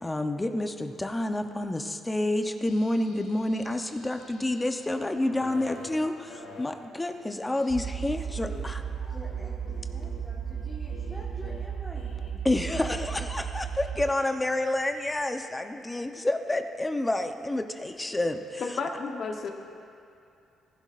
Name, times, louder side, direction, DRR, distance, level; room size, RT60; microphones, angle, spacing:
voice 1, 0.0-8.8 12.4-18.6, left 1 dB, 15° left, 6 dB, 0.7 m, -29 dB
sound 1, 2.6-15.2, left 3 dB, 75° left, 1.7 m, -49 dB
sound 2, 7.7-14.1, right 7 dB, 45° right, 0.4 m, -34 dB
voice 2, 9.0-12.4, equal, 5° right, -4 dB, 1.4 m, -47 dB
voice 3, 18.6-19.5, left 4 dB, 50° left, 3 dB, 1.0 m, -32 dB
19.5 x 11.5 x 2.5 m, 2.6 s
cardioid pair, 90°, 0 cm